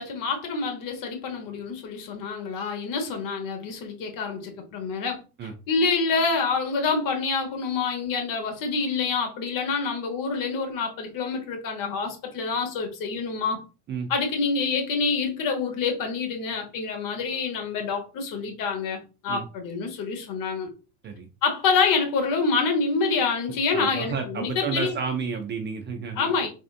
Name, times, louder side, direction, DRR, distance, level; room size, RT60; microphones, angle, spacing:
voice 1, 0.0-5.2 5.7-13.6 14.1-20.7 21.4-25.0 26.2-26.5, left 4 dB, 45° left, 1.3 m, -27 dB
voice 2, 23.7-26.3, right 5 dB, 25° right, 0.4 m, -31 dB
3.5 x 2.4 x 2.5 m
hypercardioid pair, 80°, 45 cm